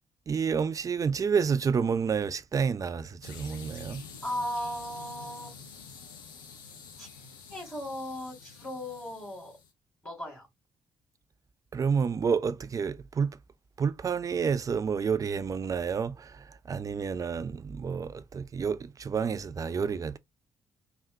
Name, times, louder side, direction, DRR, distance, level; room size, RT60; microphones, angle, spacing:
voice 1, 0.3-4.0 11.7-13.4 13.8-20.2, right 6 dB, 30° right, 0.4 m, -29 dB
sound 1, 3.2-9.7, left 6 dB, 85° left, 0.5 m, -48 dB
voice 2, 4.2-5.6 7.0-7.1 7.5-9.5 10.0-10.5, equal, 20° left, 2.1 m, -36 dB
3.4 x 2.4 x 2.6 m
figure-of-eight pair, 40°, 11 cm